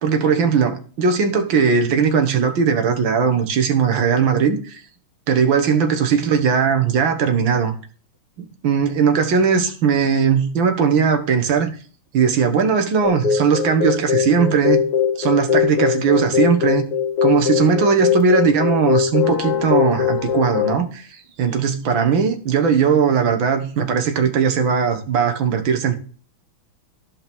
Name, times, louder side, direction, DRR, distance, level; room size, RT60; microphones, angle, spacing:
voice 1, 0.0-4.8 5.3-7.7 8.4-11.8 12.1-14.8 15.2-16.9 17.2-25.9, right 6 dB, 65° right, 1.9 m, -18 dB
sound 1, 13.0-20.8, left 8 dB, 55° left, 1.2 m, -20 dB
13.5 x 5.5 x 3.5 m
omnidirectional pair, 2.4 m